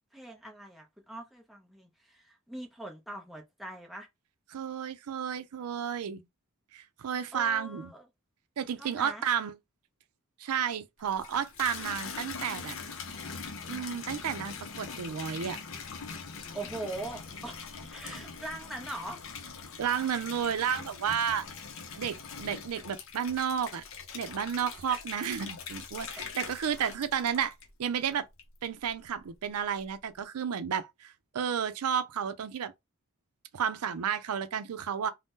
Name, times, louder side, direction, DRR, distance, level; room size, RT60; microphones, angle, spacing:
voice 1, 0.1-4.1 7.3-8.0 8.8-9.2 16.5-19.5 24.9-25.0 26.8-26.9, right 2 dB, ahead, 0.5 m, -42 dB
voice 2, 4.5-6.2 6.7-7.9 8.6-9.5 10.4-12.8 13.7-15.6 19.8-21.4 22.0-23.8 24.1-27.5 27.8-28.3 28.6-32.7 33.5-35.1, right 8 dB, 85° right, 0.5 m, -32 dB
Water tap faucet / Bathtub (filling or washing), 11.0-27.9 28.4-29.0, left 5 dB, 65° left, 0.6 m, -42 dB
2.7 x 2.1 x 3.5 m
head